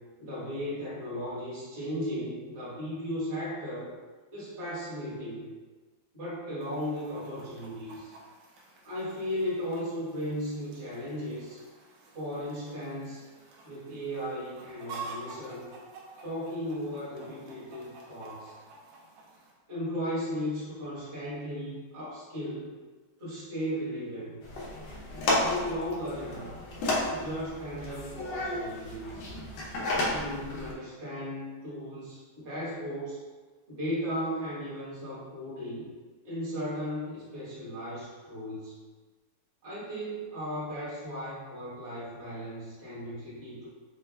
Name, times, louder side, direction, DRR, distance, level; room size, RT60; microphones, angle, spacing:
voice 1, 0.2-3.9 4.3-5.5 6.1-8.1 8.8-11.6 12.1-13.2 13.6-15.7 16.2-18.5 19.7-22.8 23.2-24.4 25.1-26.5 27.0-29.2 30.1-33.2 33.7-35.9 36.2-38.7 39.6-43.7, equal, 30° right, -10 dB, 1.3 m, -36 dB
Chicken rooster, 6.6-19.5, right 4 dB, 70° right, 1.3 m, -49 dB
sound 1, 24.4-30.7, left 1 dB, 70° left, 1.3 m, -32 dB
4.3 x 2.3 x 3.2 m, 1.4 s
omnidirectional pair, 2.2 m